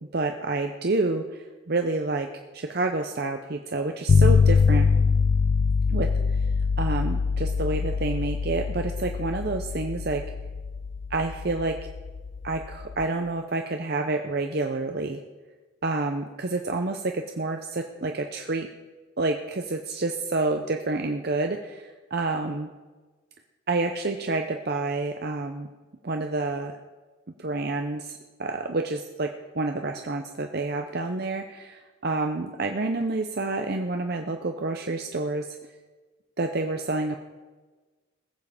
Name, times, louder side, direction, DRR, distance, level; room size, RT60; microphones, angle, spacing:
voice 1, 0.1-2.3 2.5-4.9 5.9-6.1 6.8-10.2 11.1-11.8 12.4-15.2 15.8-18.7 19.2-22.7 23.7-25.7 26.0-26.7 27.4-35.5 36.4-37.2, right 2 dB, 50° right, 5 dB, 0.6 m, -28 dB
sound 1, 4.1-13.1, left 5 dB, 60° left, 0.5 m, -24 dB
20.0 x 7.4 x 5.0 m, 1.3 s
head